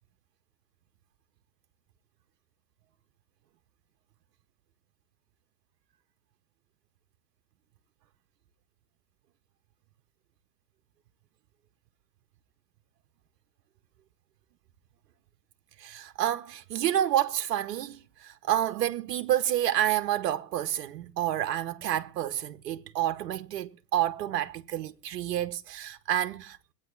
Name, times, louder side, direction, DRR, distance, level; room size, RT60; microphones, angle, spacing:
voice 1, 15.8-26.6, right 11 dB, 70° right, 0.7 m, -29 dB
23.5 x 8.9 x 2.3 m
hypercardioid pair, 100°, 48 cm